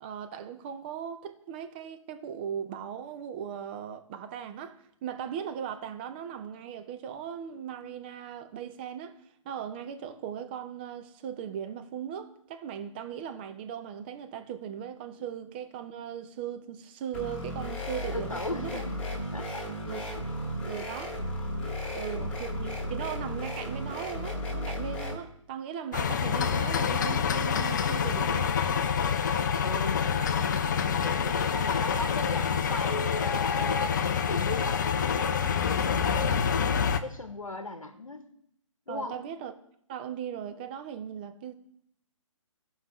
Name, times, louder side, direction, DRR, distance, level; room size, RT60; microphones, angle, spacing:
voice 1, 0.0-9.2 9.4-18.8 19.9-20.2 20.7-21.2 21.9-28.6 38.9-39.5 39.9-41.5, right 8 dB, 20° right, 0.5 m, -38 dB
sound 1, 17.1-25.1, left 1 dB, 5° left, 1.9 m, -34 dB
voice 2, 18.1-19.0 19.3-19.7 21.8-22.4 29.6-36.6 37.0-38.3 38.9-39.2, left 2 dB, 80° left, 0.9 m, -37 dB
sound 2, 25.9-37.0, left 7 dB, 35° left, 0.5 m, -27 dB
15.0 x 5.5 x 3.0 m
figure-of-eight pair, 135°, 17 cm